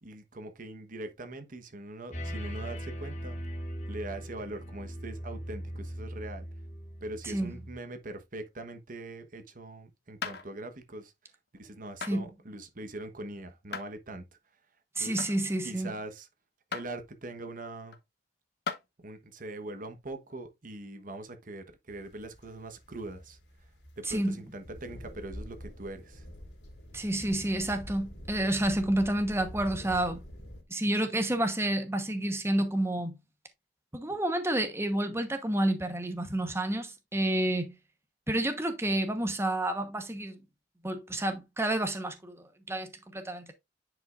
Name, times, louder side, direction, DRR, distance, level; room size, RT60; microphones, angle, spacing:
voice 1, 0.0-3.4 3.9-6.4 7.0-11.1 11.5-14.2 15.0-15.2 15.6-16.3 16.7-18.0 19.0-23.4 24.0-26.3, right 2 dB, 50° right, 1.2 m, -42 dB
sound 1, 2.1-7.8, equal, 45° left, 2.2 m, -39 dB
sound 2, 10.2-10.5 12.0-12.1 13.7-13.9 15.2-15.4 16.7-16.9 17.9-18.0 18.7-18.8 20.3-20.4, left 5 dB, 65° left, 1.1 m, -36 dB
voice 2, 15.0-15.9 24.0-24.4 26.9-30.2 30.7-33.2 33.9-37.8 38.3-40.4 40.8-43.5, right 1 dB, 15° right, 1.1 m, -30 dB
sound 3, 21.9-30.6, equal, 85° left, 2.9 m, -46 dB
9.6 x 5.5 x 2.5 m
head